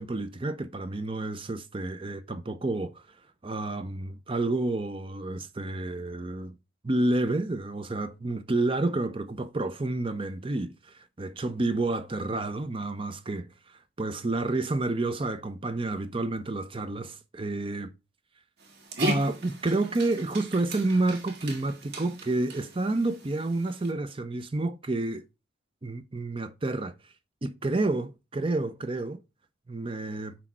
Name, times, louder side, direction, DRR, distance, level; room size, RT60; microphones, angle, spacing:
voice 1, 0.0-2.9 3.4-6.5 6.8-10.7 11.2-13.5 14.0-17.9 19.0-25.2 25.8-26.9 27.4-29.2 29.7-30.4, right 2 dB, 25° right, 0.6 m, -29 dB
Dog, 18.6-23.9, right 1 dB, 60° right, 2.0 m, -37 dB
6.2 x 4.4 x 6.1 m
head